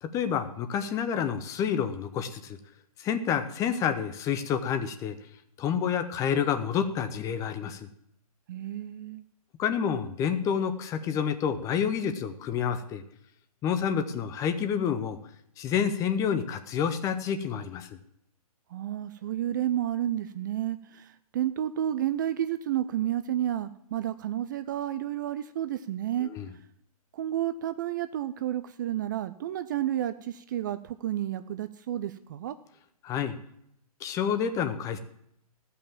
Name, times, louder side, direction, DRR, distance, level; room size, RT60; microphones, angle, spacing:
voice 1, 0.0-2.6 3.0-5.2 5.6-7.9 9.6-13.0 13.6-15.2 15.6-18.0 26.2-26.5 33.0-33.4 34.0-35.0, left 7 dB, 15° left, 10 dB, 0.7 m, -29 dB
voice 2, 8.5-9.2 18.7-26.3 27.1-32.6, right 11 dB, 30° right, 12 dB, 0.4 m, -31 dB
14.0 x 5.6 x 7.3 m, 0.74 s
figure-of-eight pair, 130°, 20 cm